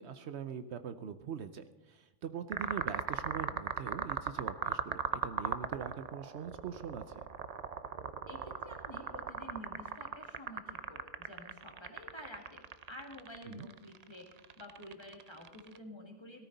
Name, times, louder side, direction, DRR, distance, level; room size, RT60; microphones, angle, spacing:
voice 1, 0.0-7.2 13.5-13.7, right 7 dB, 65° right, 10 dB, 0.9 m, -42 dB
sound 1, 2.5-15.8, right 6 dB, 45° right, 0.5 m, -38 dB
voice 2, 8.3-14.3 14.6-16.5, left 1 dB, 20° left, 2 dB, 2.0 m, -50 dB
18.0 x 13.0 x 4.0 m, 0.99 s
omnidirectional pair, 1.3 m